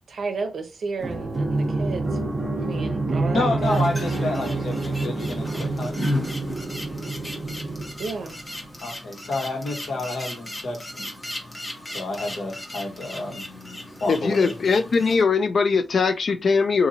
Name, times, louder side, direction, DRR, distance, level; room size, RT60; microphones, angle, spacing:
voice 1, 0.1-2.1 2.6-3.8 8.0-8.4, right 4 dB, 70° right, 0.6 m, -32 dB
sound 1, 1.0-8.6, right 2 dB, 30° right, 0.7 m, -27 dB
voice 2, 3.3-6.0 8.8-11.1 11.9-13.4 14.0-14.5, left 2 dB, 70° left, 1.3 m, -29 dB
sound 2, 3.6-15.2, left 1 dB, 15° left, 0.8 m, -36 dB
voice 3, 14.1-16.9, left 5 dB, 50° left, 0.3 m, -21 dB
3.9 x 2.5 x 2.8 m
wide cardioid pair, 175°, 0 cm